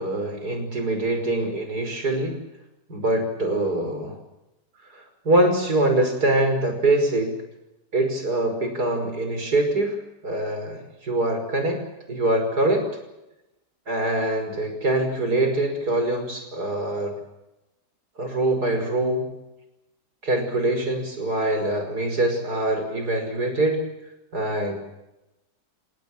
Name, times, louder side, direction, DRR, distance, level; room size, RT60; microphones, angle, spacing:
voice 1, 0.0-2.4 2.9-4.2 4.9-7.4 7.9-11.8 12.1-12.9 13.9-17.2 18.2-19.3 20.2-23.8 24.3-24.9, right 1 dB, 65° right, 6 dB, 6.0 m, -24 dB
28.5 x 18.5 x 7.4 m, 0.95 s
omnidirectional pair, 1.8 m